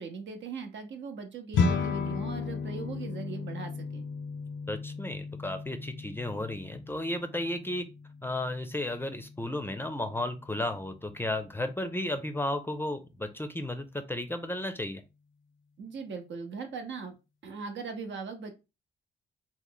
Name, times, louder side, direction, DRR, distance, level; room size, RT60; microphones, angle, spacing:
voice 1, 0.0-4.1 15.8-17.1 17.4-18.5, right 5 dB, 75° right, 5 dB, 0.8 m, -39 dB
sound 1, 1.5-11.0, left 4 dB, 85° left, 0.6 m, -35 dB
voice 2, 4.7-7.8 8.2-15.0, left 1 dB, 10° left, 8 dB, 0.5 m, -33 dB
3.1 x 2.1 x 3.8 m, 0.27 s
cardioid pair, 90°, 19 cm